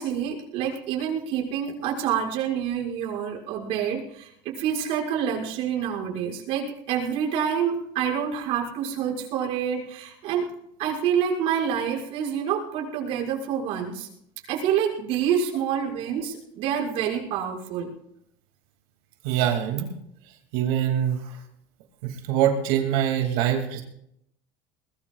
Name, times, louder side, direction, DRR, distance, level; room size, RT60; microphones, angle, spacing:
voice 1, 0.0-10.5 10.8-14.1 14.5-17.9, right 8 dB, 55° right, -2 dB, 6.0 m, -27 dB
voice 2, 19.2-19.9 20.5-21.4 22.0-23.8, right 10 dB, 75° right, 3 dB, 2.5 m, -24 dB
21.5 x 21.5 x 2.4 m, 0.74 s
cardioid pair, 165°, 12 cm